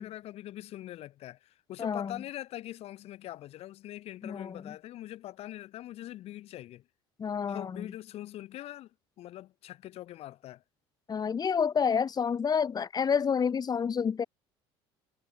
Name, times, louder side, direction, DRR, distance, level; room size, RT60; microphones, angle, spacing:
voice 1, 0.0-6.9 7.5-10.6, left 14 dB, 60° left, 6.8 m, -43 dB
voice 2, 1.8-2.2 4.2-4.8 7.2-7.9 11.1-14.2, left 6 dB, 35° left, 2.8 m, -29 dB
supercardioid pair, 80°, 12 cm